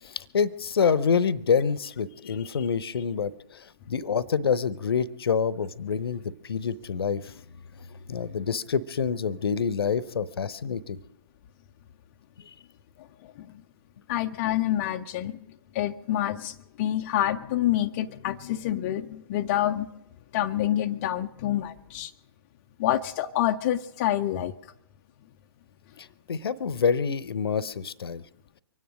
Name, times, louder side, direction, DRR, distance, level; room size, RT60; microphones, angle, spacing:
voice 1, 0.0-7.4 7.7-11.0 26.0-28.2, left 6 dB, 60° left, 19 dB, 0.8 m, -27 dB
voice 2, 14.1-15.4 15.7-19.9 20.3-22.1 22.8-24.5, left 12 dB, 30° left, 5 dB, 0.5 m, -27 dB
24.0 x 9.6 x 6.3 m, 0.84 s
figure-of-eight pair, 125°, 14 cm